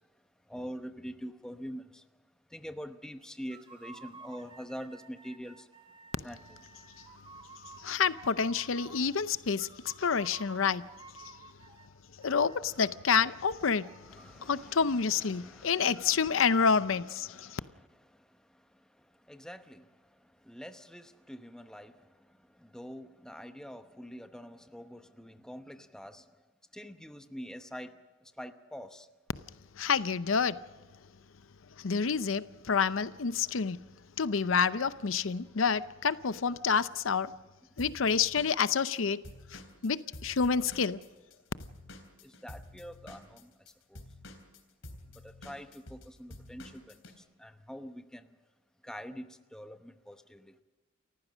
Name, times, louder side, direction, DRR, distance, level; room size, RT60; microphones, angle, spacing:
voice 1, 0.5-1.8 2.5-5.6 6.2-6.4 14.1-15.0 15.3-16.4 19.3-19.8 20.5-21.9 22.7-26.2 26.7-27.9 28.4-29.0 42.4-43.5 45.4-46.8 47.4-48.2 48.8-50.4, equal, 5° left, 0.9 m, -44 dB
sound 1, 3.5-9.2 9.6-11.9 12.2-15.1, right 4 dB, 25° right, 1.7 m, -53 dB
voice 2, 7.8-10.9 11.2-11.3 12.2-17.6 29.8-30.6 31.8-33.8 34.2-37.3 37.8-39.2 39.5-41.0, left 6 dB, 90° left, 0.7 m, -28 dB
Drum kit / Drum, 37.8-41.3 41.6-47.1, left 1 dB, 75° left, 3.6 m, -49 dB
29.0 x 15.0 x 6.3 m
head